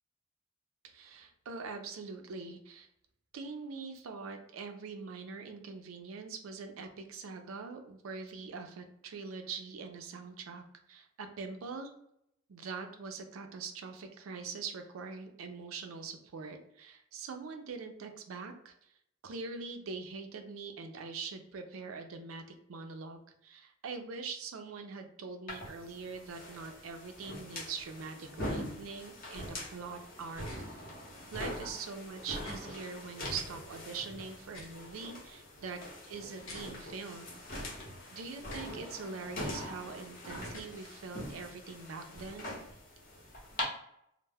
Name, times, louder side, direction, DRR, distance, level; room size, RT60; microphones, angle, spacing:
voice 1, 0.8-2.9 3.3-10.6 10.9-11.9 12.5-18.7 19.2-30.5 31.3-35.8 36.0-37.3 37.6-42.6, right 4 dB, 90° right, 5 dB, 0.4 m, -43 dB
sound 1, 25.5-43.6, left 1 dB, 45° left, 0.8 m, -43 dB
sound 2, 30.4-30.6 32.4-32.6 34.4-34.8 36.4-36.6 38.4-38.7 40.4-40.7, left 2 dB, 85° left, 0.8 m, -48 dB
2.1 x 2.0 x 3.3 m, 0.76 s
head